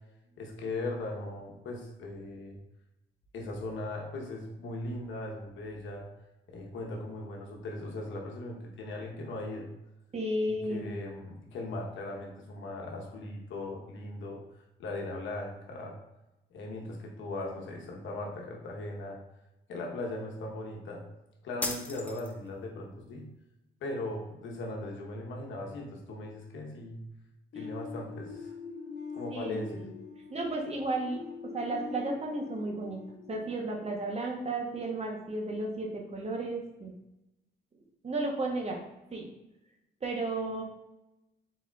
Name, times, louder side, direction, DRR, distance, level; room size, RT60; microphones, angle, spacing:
voice 1, 0.3-2.6 3.3-6.1 6.5-9.7 10.5-14.4 14.8-15.9 16.5-19.2 19.7-21.0 21.4-23.3 23.8-27.0 27.5-28.6 29.1-29.8, left 2 dB, 75° left, 0 dB, 1.1 m, -38 dB
voice 2, 10.1-10.9 29.3-29.9 30.3-31.2 31.5-33.0 33.3-36.9 38.0-38.8 39.1-39.3 40.0-40.6, right 2 dB, 35° right, 0 dB, 1.0 m, -33 dB
sound 1, 21.6-22.6, left 1 dB, 5° left, 0.6 m, -36 dB
sound 2, 27.5-34.3, left 5 dB, 50° left, 1.1 m, -43 dB
4.2 x 4.2 x 2.4 m, 0.94 s
cardioid pair, 90°, 20 cm